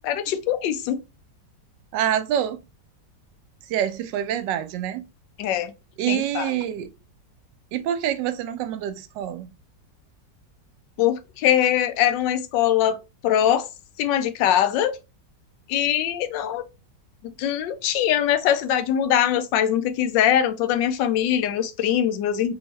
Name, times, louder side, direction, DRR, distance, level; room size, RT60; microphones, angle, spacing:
voice 1, 0.1-1.0 5.4-5.7 6.1-6.5 11.0-13.0 13.2-13.7 14.0-15.0 15.7-16.6 17.4-22.5, left 10 dB, 85° left, 1.3 m, -22 dB
voice 2, 1.9-2.6 3.7-5.0 6.0-6.9 7.7-9.5, right 10 dB, 80° right, 1.2 m, -26 dB
3.4 x 2.7 x 3.1 m
omnidirectional pair, 1.9 m